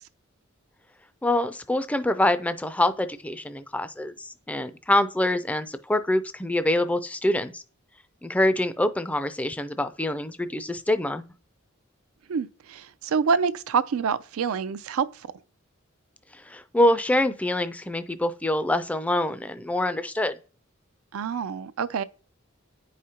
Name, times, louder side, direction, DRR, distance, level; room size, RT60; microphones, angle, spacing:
voice 1, 1.2-7.6 8.2-11.2 16.5-20.4, left 1 dB, 5° left, 0.3 m, -25 dB
voice 2, 12.3-15.1 21.1-22.0, right 6 dB, 85° right, 0.4 m, -26 dB
9.3 x 4.9 x 2.8 m
head